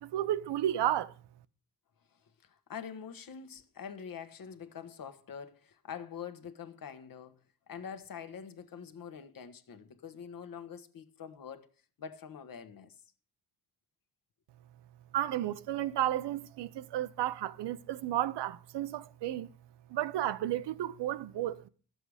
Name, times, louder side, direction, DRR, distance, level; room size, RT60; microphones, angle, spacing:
voice 1, 0.0-1.1 15.1-19.5 19.9-21.7, right 12 dB, 85° right, 0.7 m, -32 dB
voice 2, 2.4-11.7 12.0-13.0, left 7 dB, 55° left, 1.3 m, -45 dB
12.5 x 7.8 x 4.9 m
cardioid pair, 125°, 41 cm